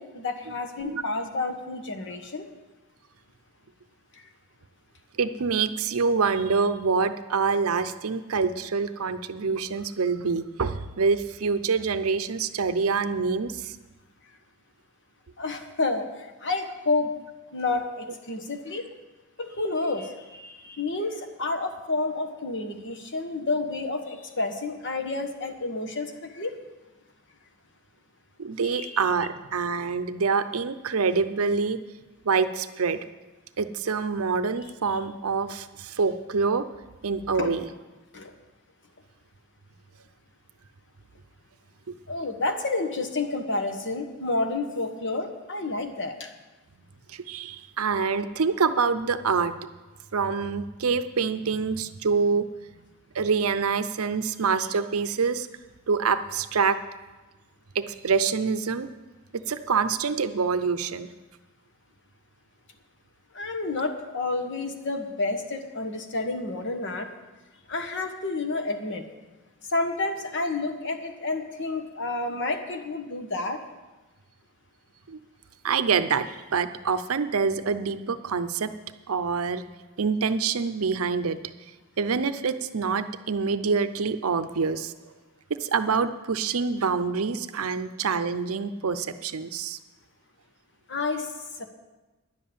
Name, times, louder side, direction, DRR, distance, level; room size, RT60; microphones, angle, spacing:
voice 1, 0.0-2.4 4.1-4.3 15.4-17.1 17.5-18.9 19.4-26.5 28.6-29.0 37.3-37.5 38.1-38.3 42.1-46.3 63.3-67.1 67.7-69.0 69.6-73.6 90.9-91.3 91.5-91.7, left 3 dB, 60° left, 6 dB, 1.3 m, -30 dB
voice 2, 5.2-13.8 28.4-31.8 32.2-33.0 33.6-36.7 37.0-37.7 47.1-49.5 50.1-52.4 53.1-55.5 55.9-56.8 57.7-58.9 59.5-61.1 75.1-75.2 75.6-78.7 79.1-79.6 80.0-81.4 82.0-84.9 85.6-89.8, right 5 dB, 80° right, 11 dB, 0.6 m, -26 dB
10.5 x 7.4 x 8.6 m, 1.2 s
head